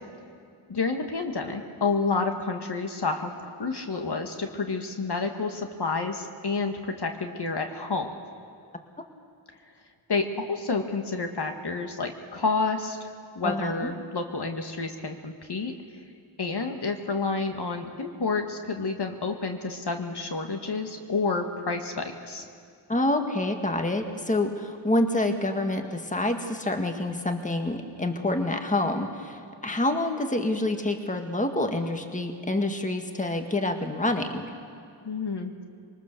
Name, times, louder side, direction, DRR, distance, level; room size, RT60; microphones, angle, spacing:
voice 1, 0.7-8.1 10.1-13.1 13.4-15.7 16.4-22.4 35.1-35.5, left 4 dB, 50° left, 4 dB, 1.9 m, -29 dB
voice 2, 13.4-13.9 22.9-34.5, left 2 dB, 15° left, 5 dB, 1.8 m, -27 dB
23.0 x 19.0 x 6.8 m, 2.4 s
cardioid pair, 50°, 50 cm